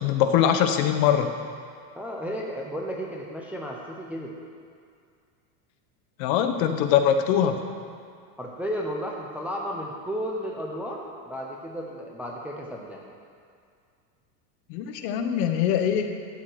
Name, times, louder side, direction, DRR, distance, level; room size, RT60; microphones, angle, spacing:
voice 1, 0.0-1.3 6.2-7.6 14.7-16.1, left 9 dB, 55° left, 6 dB, 1.0 m, -22 dB
voice 2, 1.9-4.4 8.4-13.0, equal, 5° right, -2 dB, 0.5 m, -33 dB
13.0 x 4.9 x 7.6 m, 2.2 s
supercardioid pair, 155°, 49 cm